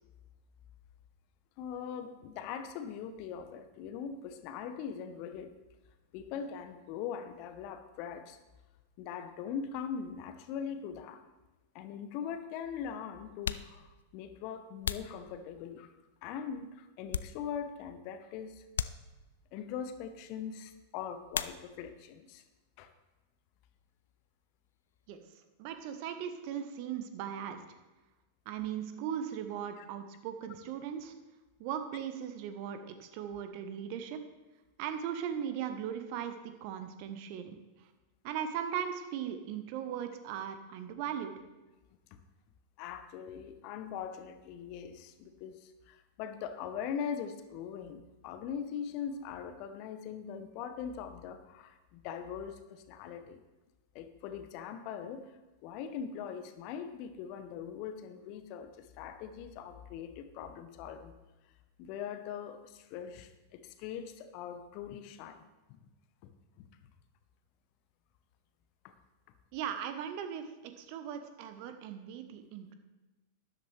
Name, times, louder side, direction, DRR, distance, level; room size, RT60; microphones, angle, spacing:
voice 1, 1.6-5.5 6.1-8.4 9.0-11.2 11.7-13.9 14.1-15.9 16.2-18.5 19.5-22.4 22.8-22.9 29.7-29.9 42.8-45.6 45.9-53.4 53.9-55.2 55.6-58.7 59.0-61.1 61.8-65.4 65.7-65.8, left 7 dB, 45° left, 10 dB, 0.9 m, -41 dB
sound 1, 11.5-11.6 12.6-12.7 13.3-15.9 16.4-17.8 18.1-18.3 18.7-19.5 21.3-22.1 22.3-23.0 23.3-25.5, left 8 dB, 65° left, 0.4 m, -41 dB
voice 2, 25.6-27.6 28.5-31.1 31.6-34.2 34.8-37.6 38.2-41.4 69.5-72.7, right 9 dB, 45° right, 8 dB, 1.0 m, -38 dB
12.5 x 10.5 x 3.3 m, 1.1 s
figure-of-eight pair, 90°, 0 cm